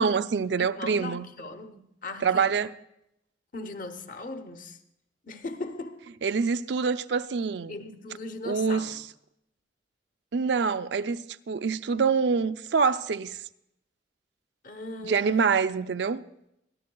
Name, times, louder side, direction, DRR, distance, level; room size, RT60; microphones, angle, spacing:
voice 1, 0.0-1.3 2.2-2.7 6.2-7.8 8.4-9.0 10.3-13.4 15.0-16.2, right 5 dB, 70° right, 0.4 m, -25 dB
voice 2, 0.6-2.5 3.5-4.8 5.2-6.1 7.7-9.0 14.6-15.5, left 2 dB, 50° left, 0.9 m, -39 dB
23.5 x 13.0 x 2.3 m
head